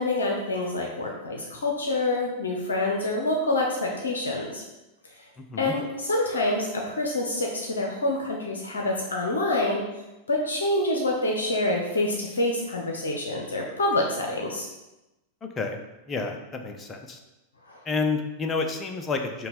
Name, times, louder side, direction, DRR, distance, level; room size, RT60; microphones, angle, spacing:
voice 1, 0.0-4.6 5.6-9.8 10.3-14.7 17.7-17.8, left 2 dB, 70° left, 0 dB, 0.6 m, -27 dB
voice 2, 16.1-17.2 17.9-19.5, left 4 dB, 20° left, 5 dB, 0.5 m, -29 dB
5.2 x 2.2 x 4.2 m, 0.99 s
figure-of-eight pair, 90°, 0 cm